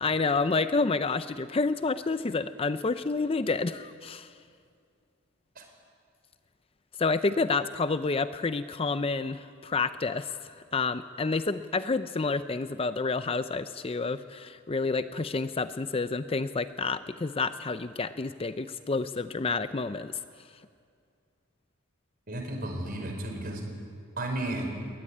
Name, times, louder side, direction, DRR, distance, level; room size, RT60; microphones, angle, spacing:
voice 1, 0.0-4.3 7.0-10.3 10.7-20.1, left 4 dB, 25° left, 12 dB, 0.5 m, -29 dB
voice 2, 22.3-23.6 24.2-24.7, right 1 dB, 45° right, 3 dB, 4.8 m, -33 dB
21.5 x 18.5 x 9.8 m, 2.3 s
head